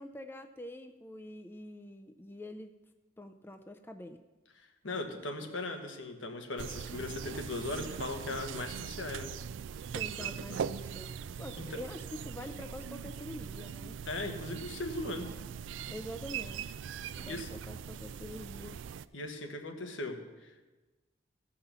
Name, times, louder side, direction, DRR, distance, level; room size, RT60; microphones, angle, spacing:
voice 1, 0.0-2.7 3.2-4.2 5.4-5.5 9.9-14.0 15.9-16.8 17.2-18.8, left 1 dB, 10° left, 7 dB, 0.4 m, -45 dB
voice 2, 4.6-9.3 10.2-10.3 11.7-11.8 14.0-15.4 17.0-17.5 19.1-20.7, left 2 dB, 90° left, 4 dB, 1.4 m, -39 dB
sound 1, 6.6-19.1, right 7 dB, 80° right, 0.3 m, -41 dB
15.0 x 5.7 x 6.8 m, 1.2 s
head